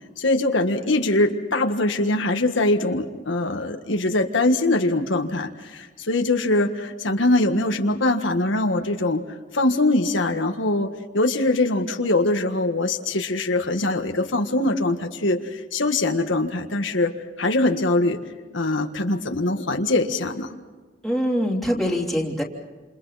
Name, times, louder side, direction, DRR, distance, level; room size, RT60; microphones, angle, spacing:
voice 1, 0.2-17.1 17.4-18.2 18.5-20.5, left 2 dB, 75° left, 4 dB, 1.6 m, -22 dB
voice 2, 21.0-22.4, equal, ahead, -2 dB, 3.2 m, -23 dB
29.0 x 28.0 x 4.2 m, 1.4 s
head